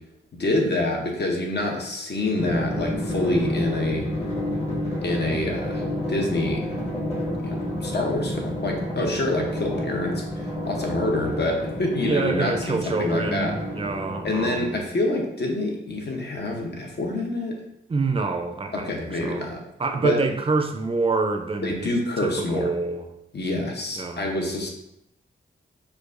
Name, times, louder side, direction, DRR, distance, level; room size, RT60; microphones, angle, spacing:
voice 1, 0.4-4.1 5.0-5.8 6.1-6.6 7.4-13.5 14.2-17.6 18.7-19.6 20.0-20.2 21.6-22.7 23.3-24.7, left 2 dB, 55° left, 1 dB, 0.8 m, -26 dB
Drum, 2.4-14.8, left 1 dB, 30° left, 1.0 m, -30 dB
voice 2, 12.0-14.8 17.9-19.5 19.8-21.9 22.2-23.1 24.0-24.3, right 3 dB, 25° right, 5 dB, 0.4 m, -26 dB
4.5 x 2.3 x 2.5 m, 0.81 s
wide cardioid pair, 70°, 21 cm